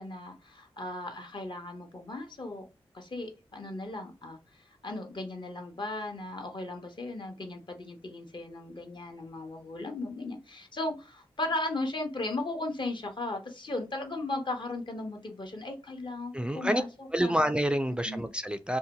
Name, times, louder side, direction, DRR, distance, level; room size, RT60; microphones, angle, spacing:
voice 1, 0.0-2.6 2.9-16.9 17.2-17.4 18.0-18.3, left 2 dB, 50° left, 0.8 m, -36 dB
voice 2, 16.3-16.8 17.1-18.8, equal, 10° right, 0.3 m, -28 dB
2.6 x 2.2 x 2.8 m
cardioid pair, 45°, 10 cm